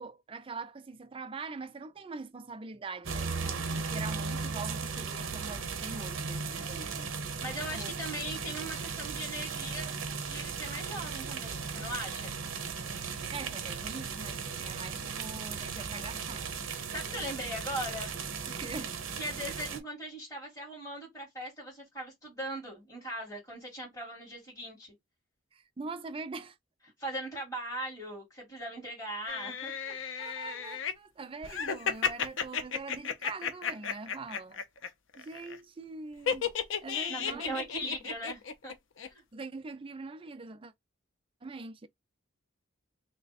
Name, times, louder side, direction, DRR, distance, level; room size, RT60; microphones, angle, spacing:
voice 1, 0.0-7.1 7.7-7.9 13.1-16.7 18.5-19.0 25.5-26.6 29.9-34.6 35.2-36.5 36.8-37.9 39.3-40.7 41.4-41.9, right 4 dB, 25° right, 0.4 m, -43 dB
sound 1, 3.0-19.8, right 5 dB, 80° right, 0.8 m, -36 dB
voice 2, 7.4-12.3 16.9-18.2 19.2-24.9 27.0-29.9 37.1-38.7 39.1-39.2, equal, 15° left, 2.1 m, -39 dB
sound 2, 29.3-30.9 31.4-34.9 35.1-35.6 36.3-38.7 39.0-39.1, left 7 dB, 70° left, 0.6 m, -33 dB
3.3 x 2.1 x 4.1 m
head